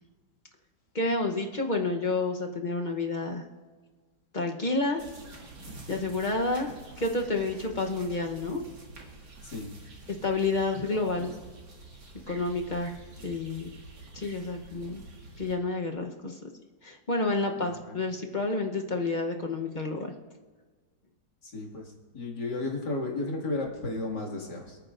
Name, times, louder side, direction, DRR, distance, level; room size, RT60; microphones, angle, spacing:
voice 1, 0.9-3.4 4.3-5.0 5.9-8.6 10.2-11.3 12.3-12.9 13.2-13.7 14.1-15.0 15.4-16.4 16.8-20.1, left 3 dB, 40° left, 2 dB, 0.7 m, -29 dB
sound 1, 5.0-15.5, right 2 dB, 65° right, 2.5 m, -47 dB
voice 2, 17.6-18.0 21.4-24.8, left 2 dB, 65° left, -1 dB, 2.8 m, -34 dB
28.0 x 9.4 x 2.5 m, 1.4 s
omnidirectional pair, 2.0 m